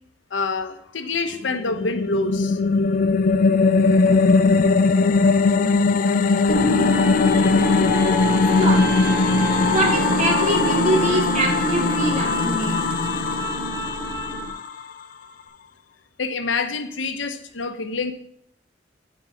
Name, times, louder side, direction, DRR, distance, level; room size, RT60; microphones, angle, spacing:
voice 1, 0.3-2.6 3.9-4.0 16.2-18.1, left 3 dB, 85° left, 1.0 m, -26 dB
sound 1, 1.4-14.8, left 4 dB, 45° left, 0.3 m, -20 dB
sound 2, 6.5-14.7, equal, 30° left, 3.1 m, -25 dB
voice 2, 8.6-12.8, right 1 dB, 40° right, 2.5 m, -24 dB
9.3 x 4.8 x 7.6 m
head